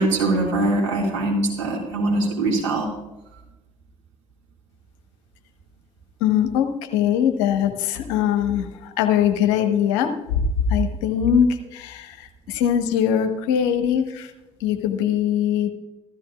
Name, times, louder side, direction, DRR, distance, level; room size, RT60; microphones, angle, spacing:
voice 1, 0.0-2.9, right 2 dB, 85° right, -2 dB, 2.2 m, -22 dB
voice 2, 6.2-10.1 10.7-14.3 14.6-15.7, left 9 dB, 75° left, 7 dB, 1.0 m, -21 dB
15.5 x 13.0 x 2.4 m, 1.0 s
hypercardioid pair, 45°, 15 cm